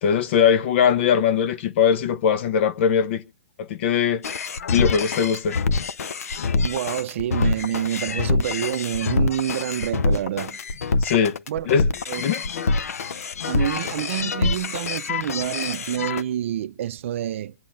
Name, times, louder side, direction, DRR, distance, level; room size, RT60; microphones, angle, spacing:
voice 1, 0.0-3.2 3.6-4.2 4.7-5.6 11.0-11.4 11.6-11.9 12.2-12.5, left 7 dB, 50° left, 0.7 m, -20 dB
sound 1, 4.2-16.2, left 4 dB, 90° left, 0.6 m, -25 dB
voice 2, 6.6-10.6 11.5-11.7 12.1-12.2 13.5-17.5, right 11 dB, 60° right, 0.5 m, -27 dB
25.0 x 8.5 x 2.5 m
hypercardioid pair, 145°, 8 cm